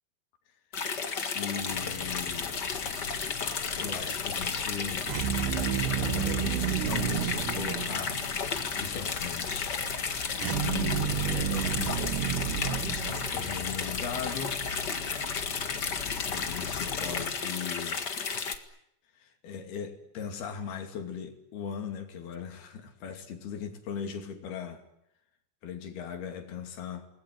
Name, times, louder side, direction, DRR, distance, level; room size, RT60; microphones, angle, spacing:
sound 1, 0.7-18.6, left 5 dB, 50° left, 1.2 m, -33 dB
voice 1, 1.3-2.7 3.8-5.1 6.0-8.2 8.5-9.8 10.5-12.1 12.6-14.6 15.8-18.1 19.2-24.8 25.6-27.1, left 7 dB, 65° left, 4.6 m, -39 dB
sound 2, 1.7-17.3, left 5 dB, 85° left, 5.0 m, -43 dB
sound 3, 5.1-8.4 10.4-13.7, right 10 dB, 80° right, 3.4 m, -31 dB
29.0 x 20.0 x 9.8 m
omnidirectional pair, 4.9 m